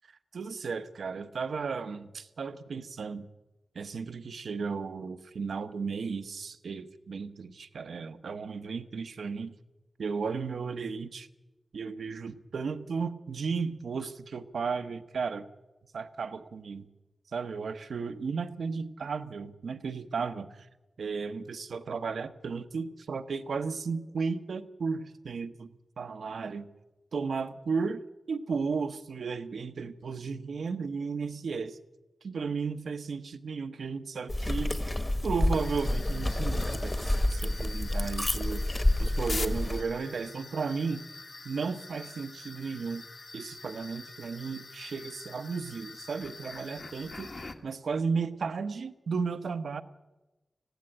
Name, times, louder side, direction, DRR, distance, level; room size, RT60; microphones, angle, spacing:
voice 1, 0.3-3.3 3.7-9.5 10.0-11.3 11.7-15.5 15.9-16.9 17.3-20.7 21.0-25.7 26.0-26.7 27.1-28.0 28.3-31.8 32.2-34.8 35.2-38.6 39.0-41.0 41.4-43.0 43.3-49.8, right 5 dB, 85° right, 10 dB, 1.0 m, -34 dB
sound 1, 34.3-39.8, left 1 dB, 20° left, 1.3 m, -29 dB
sound 2, 35.5-47.6, left 3 dB, 45° left, 1.6 m, -44 dB
18.5 x 15.5 x 10.0 m, 1.1 s
wide cardioid pair, 105°, 0 cm